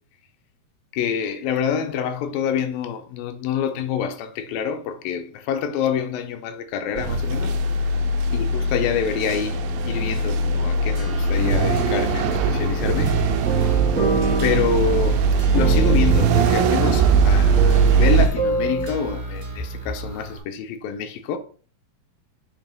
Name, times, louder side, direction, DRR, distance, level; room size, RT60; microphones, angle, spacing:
voice 1, 0.9-7.6 8.3-13.2 13.7-13.8 14.3-15.2 15.5-21.4, left 7 dB, 80° left, 2.4 m, -26 dB
sound 1, 7.0-18.3, right 4 dB, 85° right, 2.4 m, -20 dB
sound 2, 10.9-20.4, equal, 30° right, 0.5 m, -31 dB
sound 3, 13.4-18.9, right 3 dB, 65° right, 0.8 m, -27 dB
7.1 x 3.0 x 5.2 m
omnidirectional pair, 4.1 m